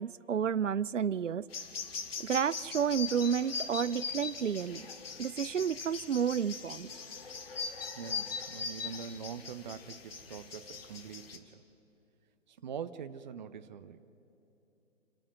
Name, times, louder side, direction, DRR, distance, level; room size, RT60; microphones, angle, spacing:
voice 1, 0.0-1.5 2.2-4.9 5.2-6.9, right 7 dB, 75° right, 22 dB, 0.6 m, -31 dB
sound 1, 1.5-11.4, left 5 dB, 50° left, 2.0 m, -41 dB
voice 2, 8.0-11.6 12.5-14.0, right 7 dB, 40° right, 12 dB, 0.7 m, -44 dB
28.5 x 12.5 x 7.9 m, 2.9 s
figure-of-eight pair, 130°, 37 cm